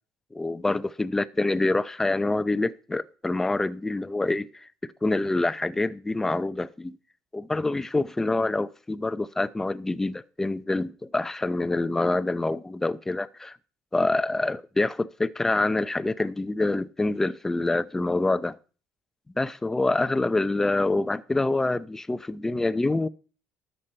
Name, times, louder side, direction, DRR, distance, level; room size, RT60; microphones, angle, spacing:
voice 1, 0.3-6.9 7.3-13.6 13.9-18.6 19.4-23.1, left 2 dB, 10° left, 0.6 m, -26 dB
13.0 x 8.2 x 4.4 m
cardioid pair, 115°, 4 cm